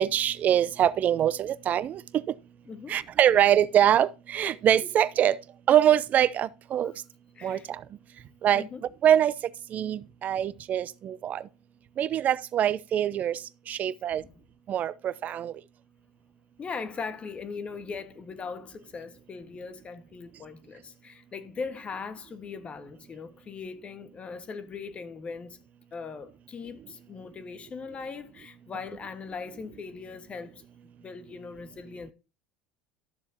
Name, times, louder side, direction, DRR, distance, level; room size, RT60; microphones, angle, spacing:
voice 1, 0.0-2.0 2.9-5.4 5.7-6.9 7.4-7.8 8.4-8.6 9.0-9.3 9.7-11.4 12.0-13.4 13.7-14.2 14.7-15.5, right 10 dB, 45° right, 0.7 m, -24 dB
voice 2, 2.7-3.0 4.4-4.6 6.8-7.0 7.3-7.7 8.5-8.8 14.1-14.3 16.6-25.6 25.9-30.6 31.0-32.1, left 5 dB, 30° left, 1.5 m, -40 dB
12.5 x 7.1 x 2.8 m
hypercardioid pair, 75°, 4 cm